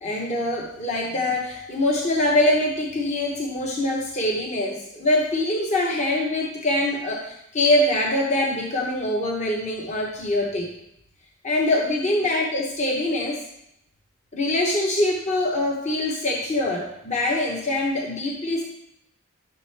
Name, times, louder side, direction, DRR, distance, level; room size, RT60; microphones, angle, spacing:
voice 1, 0.0-10.7 11.4-13.4 14.3-18.6, left 1 dB, 30° left, -1 dB, 0.9 m, -24 dB
12.5 x 6.3 x 3.3 m, 0.78 s
head